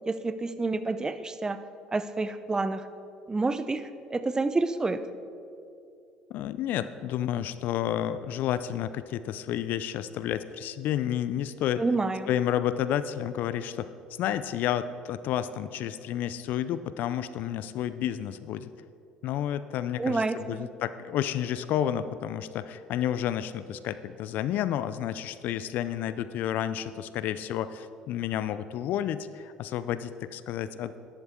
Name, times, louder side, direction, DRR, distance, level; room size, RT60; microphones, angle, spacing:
voice 1, 0.1-1.6 1.9-2.9 3.3-3.8 4.1-5.0 11.8-12.3 20.0-20.7, right 3 dB, 20° right, 12 dB, 0.7 m, -28 dB
voice 2, 6.3-11.8 12.3-13.9 14.2-18.7 19.2-31.0, left 10 dB, 65° left, 14 dB, 0.4 m, -30 dB
12.5 x 11.0 x 3.7 m, 2.6 s
hypercardioid pair, 65°, 3 cm